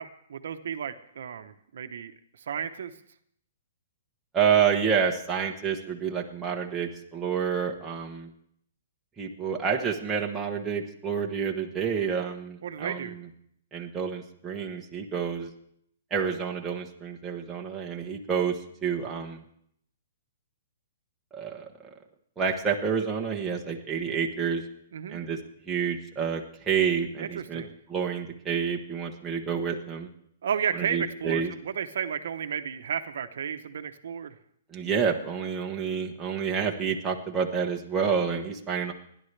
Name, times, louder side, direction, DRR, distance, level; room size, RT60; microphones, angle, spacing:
voice 1, 0.0-2.1 2.4-2.9 12.6-13.2 24.9-25.2 27.2-27.7 30.4-34.3, right 8 dB, 60° right, 8 dB, 1.0 m, -33 dB
voice 2, 4.3-8.3 9.2-13.2 13.7-15.5 16.1-18.5 18.8-19.4 21.3-21.9 22.4-24.6 25.1-25.4 25.7-27.6 27.9-30.1 30.7-31.5 34.7-38.9, right 7 dB, 10° right, -1 dB, 1.0 m, -28 dB
29.0 x 11.0 x 3.3 m, 0.70 s
hypercardioid pair, 175°, 0 cm